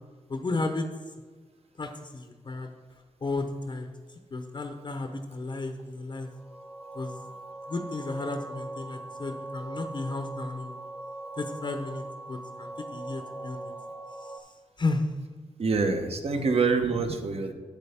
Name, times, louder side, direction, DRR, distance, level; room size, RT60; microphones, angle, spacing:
voice 1, 0.3-0.9 1.8-2.7 3.2-3.9 4.3-6.3 6.9-7.2 7.7-10.8 11.4-13.7 14.2-14.5 14.8-15.0 16.3-16.5 17.5-17.6, left 3 dB, 40° left, 6 dB, 0.6 m, -33 dB
sound 1, 6.2-14.4, right 2 dB, ahead, 0.8 m, -41 dB
voice 2, 15.6-17.5, right 4 dB, 55° right, 6 dB, 0.9 m, -26 dB
8.3 x 7.9 x 3.5 m, 1.4 s
cardioid pair, 90°, 13 cm